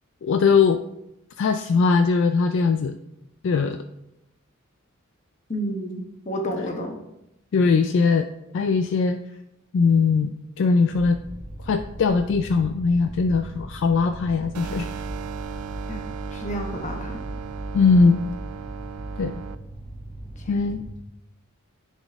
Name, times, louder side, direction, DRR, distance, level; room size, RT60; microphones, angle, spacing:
voice 1, 0.2-0.8 1.4-3.0 3.4-3.8 7.5-8.3 8.5-9.2 9.7-11.2 11.6-14.9 17.7-18.2 19.2-19.4 20.5-20.8, left 4 dB, 60° left, 8 dB, 0.3 m, -20 dB
voice 2, 5.5-7.0 15.9-16.0 16.3-17.2 20.4-20.5, equal, 35° left, 3 dB, 1.0 m, -30 dB
sound 1, 10.9-20.9, right 1 dB, 10° left, 1.2 m, -39 dB
sound 2, 14.5-19.5, right 5 dB, 90° right, 0.4 m, -35 dB
9.8 x 4.1 x 3.5 m, 0.87 s
head